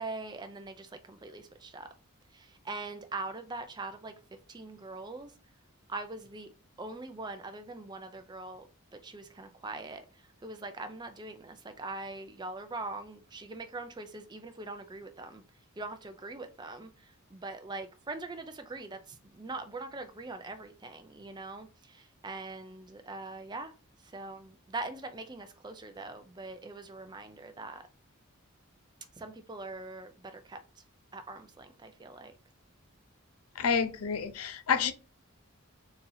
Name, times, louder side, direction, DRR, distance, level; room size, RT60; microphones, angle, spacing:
voice 1, 0.0-1.9 2.3-4.1 4.5-5.3 5.9-6.5 6.8-8.7 9.0-10.0 10.4-15.4 15.8-16.9 17.3-23.7 24.1-27.8 29.2-30.6 31.1-32.3, right 3 dB, 20° right, 0.5 m, -42 dB
voice 2, 33.6-34.9, left 6 dB, 85° left, 0.6 m, -29 dB
4.0 x 2.8 x 3.9 m
head